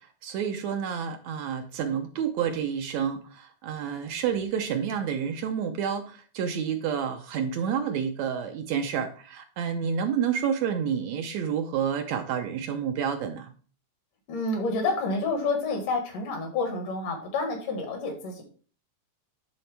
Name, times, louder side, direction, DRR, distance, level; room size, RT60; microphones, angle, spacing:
voice 1, 0.2-13.5, right 7 dB, 75° right, 6 dB, 1.8 m, -29 dB
voice 2, 14.3-18.4, left 3 dB, 80° left, 3 dB, 3.2 m, -29 dB
10.5 x 4.1 x 3.3 m, 0.41 s
omnidirectional pair, 3.6 m